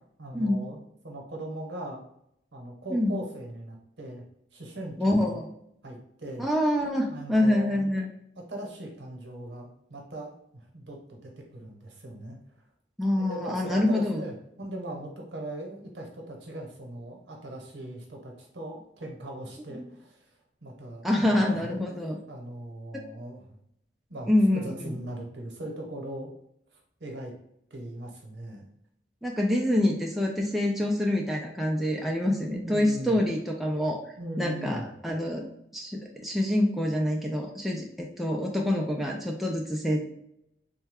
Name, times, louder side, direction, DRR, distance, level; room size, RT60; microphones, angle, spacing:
voice 1, 0.2-2.0 2.5-4.2 4.5-5.4 5.8-6.5 7.1-7.8 8.4-12.4 13.2-20.3 20.6-23.5 24.1-26.3 27.0-27.3 27.7-28.7 32.4-33.2 34.2-34.9, right 1 dB, 85° right, 1 dB, 0.9 m, -39 dB
voice 2, 5.0-5.5 6.4-8.1 13.0-14.2 19.8-19.9 21.0-22.1 24.3-24.9 29.2-34.0 34.4-35.5 35.7-40.0, left 1 dB, ahead, -1 dB, 0.3 m, -26 dB
3.1 x 2.2 x 3.4 m, 0.73 s
head